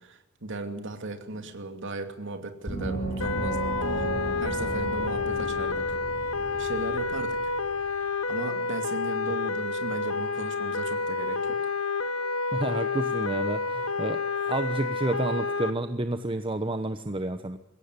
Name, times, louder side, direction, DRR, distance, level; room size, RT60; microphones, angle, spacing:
voice 1, 0.0-4.1 4.4-6.0 6.6-7.5 8.1-11.7, right 2 dB, 60° right, 6 dB, 2.6 m, -37 dB
Gong, 2.7-7.9, right 2 dB, 30° left, 7.0 m, -34 dB
sound 1, 3.2-15.7, left 4 dB, 80° left, 1.6 m, -29 dB
voice 2, 12.5-17.6, right 2 dB, 25° right, 9 dB, 1.0 m, -30 dB
22.0 x 17.5 x 9.6 m, 0.96 s
head